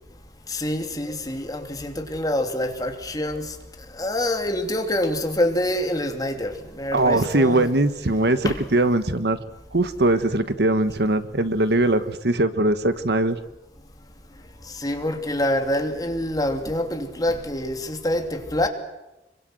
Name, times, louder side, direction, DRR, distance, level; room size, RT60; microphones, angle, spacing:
voice 1, 0.5-3.5 4.0-7.7 8.4-8.6 14.8-18.7, left 1 dB, 20° left, 2.9 m, -26 dB
voice 2, 6.9-9.4 9.7-13.4, right 2 dB, 60° right, 1.3 m, -21 dB
26.5 x 24.0 x 7.9 m
head